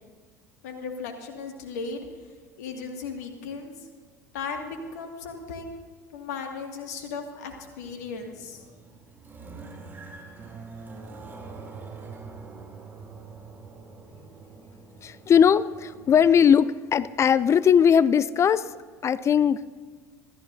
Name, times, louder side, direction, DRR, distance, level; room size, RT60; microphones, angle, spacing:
voice 1, 0.6-2.1 2.6-3.7 4.3-5.8 6.1-8.6, left 5 dB, 70° left, 3 dB, 2.1 m, -36 dB
sound 1, 7.9-16.4, right 4 dB, 20° right, 3.0 m, -44 dB
voice 2, 15.0-18.7 19.0-19.6, left 8 dB, 30° left, 18 dB, 0.4 m, -19 dB
26.0 x 14.5 x 2.7 m, 1.5 s
figure-of-eight pair, 70°, 9 cm